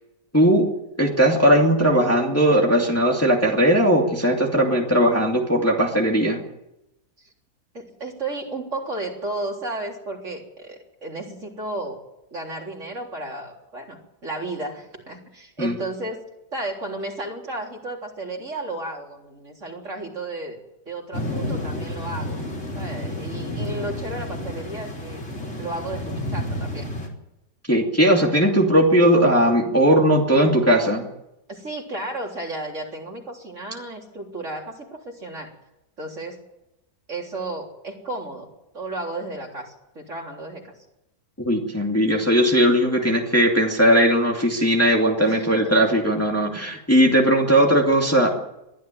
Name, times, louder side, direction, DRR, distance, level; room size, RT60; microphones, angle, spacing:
voice 1, 0.3-0.7 1.0-6.4 15.6-15.7 27.7-31.0 41.4-48.3, equal, 10° left, 0 dB, 2.5 m, -18 dB
voice 2, 7.7-12.0 12.3-16.2 16.5-20.6 20.9-22.4 22.8-25.2 25.6-26.9 31.5-35.5 36.0-36.4 37.1-38.5 38.7-40.7 45.2-46.0, right 2 dB, 45° right, 0 dB, 4.1 m, -33 dB
sound 1, 21.1-27.1, left 1 dB, 45° left, 4.0 m, -30 dB
22.5 x 13.5 x 9.2 m, 0.89 s
omnidirectional pair, 1.7 m